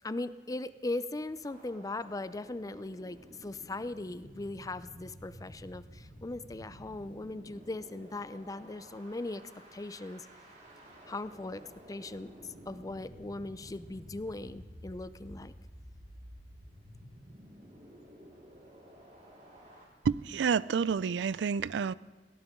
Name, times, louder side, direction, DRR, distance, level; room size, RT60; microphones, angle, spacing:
voice 1, 0.0-10.3 11.1-12.3 12.7-15.5, left 2 dB, 20° left, 14 dB, 0.5 m, -39 dB
sound 1, 1.4-19.9, equal, 45° right, 4.3 m, -52 dB
voice 2, 20.1-21.9, right 6 dB, 80° right, 19 dB, 0.4 m, -29 dB
22.0 x 17.5 x 3.7 m, 1.3 s
head